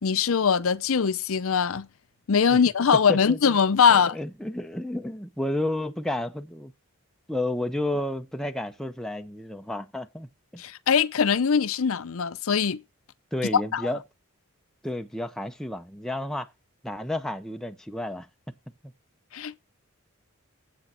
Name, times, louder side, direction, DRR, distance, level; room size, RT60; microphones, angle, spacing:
voice 1, 0.0-1.9 2.3-4.2 10.6-12.8 13.5-13.8 19.3-19.6, left 6 dB, 70° left, 0.6 m, -22 dB
voice 2, 4.1-6.7 7.3-10.3 10.5-10.6 13.3-14.0 14.8-16.5 16.8-18.3, left 1 dB, ahead, 0.6 m, -31 dB
8.5 x 7.8 x 4.3 m
head